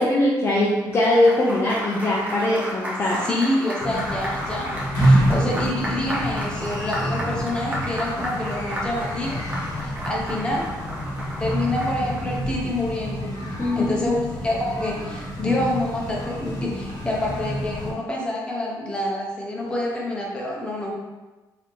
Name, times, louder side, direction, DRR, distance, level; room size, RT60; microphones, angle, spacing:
voice 1, 0.0-3.2 13.6-14.2, left 1 dB, 30° left, -5 dB, 0.5 m, -21 dB
Applause, 0.7-12.4, equal, 20° right, 0.9 m, -33 dB
voice 2, 3.2-9.4 9.8-10.6 11.4-13.3 13.8-14.2 14.4-21.0, left 1 dB, 10° left, -3 dB, 0.9 m, -27 dB
sound 1, 3.8-17.9, equal, 55° left, 1.1 m, -27 dB
4.0 x 2.8 x 3.3 m, 1.2 s
cardioid pair, 135°, 8 cm